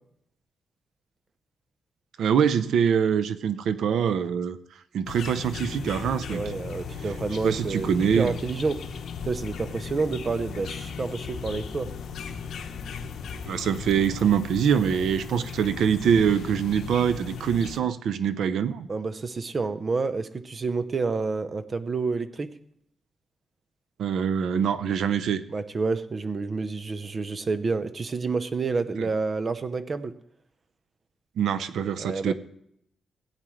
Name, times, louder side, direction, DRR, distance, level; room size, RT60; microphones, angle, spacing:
voice 1, 2.2-4.6 4.9-6.4 7.4-8.3 13.5-18.9 24.0-25.4 29.0-29.1 31.4-32.3, right 7 dB, 80° right, 0.6 m, -24 dB
sound 1, 5.1-17.8, left 6 dB, 75° left, 1.0 m, -37 dB
voice 2, 6.0-8.8 9.2-11.9 18.9-22.6 25.5-30.1 32.0-32.3, right 4 dB, 35° right, 0.7 m, -29 dB
17.0 x 9.1 x 3.2 m
cardioid pair, 125°, 0 cm